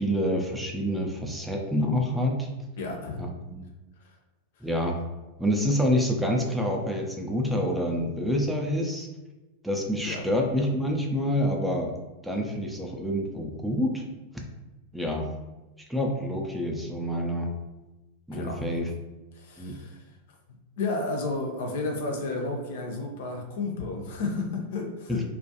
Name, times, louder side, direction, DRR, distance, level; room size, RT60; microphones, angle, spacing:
voice 1, 0.0-2.5 3.2-3.6 4.6-5.0 5.4-9.1 9.6-11.9 12.2-14.0 14.9-15.3 15.9-17.5 18.3-18.9 19.6-19.7 25.1-25.2, equal, 5° right, 0 dB, 0.4 m, -27 dB
voice 2, 2.8-3.2 4.0-4.1 10.0-10.2 18.3-18.7 19.3-20.0 20.8-25.2, left 3 dB, 55° left, 2 dB, 0.5 m, -32 dB
2.3 x 2.1 x 2.7 m, 1.1 s
figure-of-eight pair, 90°, 0 cm